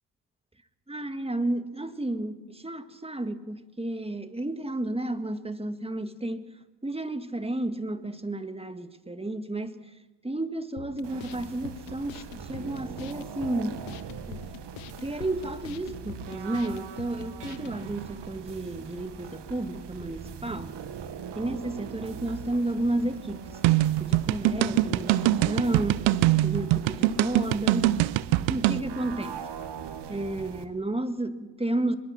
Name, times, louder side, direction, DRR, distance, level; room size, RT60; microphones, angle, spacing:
voice 1, 0.9-6.5 6.8-9.8 10.2-13.8 14.3-14.4 15.0-20.8 21.4-23.6 24.0-26.1 26.4-28.0 28.5-29.4 30.1-32.0, right 1 dB, 10° right, 1.9 m, -32 dB
sound 1, 10.8-17.8, left 13 dB, 80° left, 1.2 m, -45 dB
sound 2, 11.0-30.7, right 7 dB, 60° right, 2.2 m, -41 dB
sound 3, 23.6-28.8, right 15 dB, 75° right, 0.8 m, -23 dB
24.5 x 22.0 x 6.0 m
hypercardioid pair, 55°, 47 cm